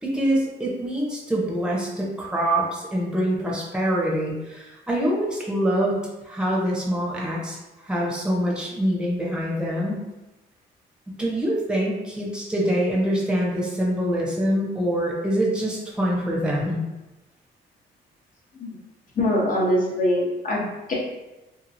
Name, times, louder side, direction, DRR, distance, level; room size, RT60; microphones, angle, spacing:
voice 1, 0.0-6.0 6.2-7.6 7.8-10.0 11.1-16.8, equal, 5° right, -4 dB, 0.8 m, -25 dB
voice 2, 19.1-20.9, left 1 dB, 40° left, -4 dB, 1.0 m, -23 dB
2.8 x 2.5 x 2.6 m, 1.0 s
cardioid pair, 90°, 20 cm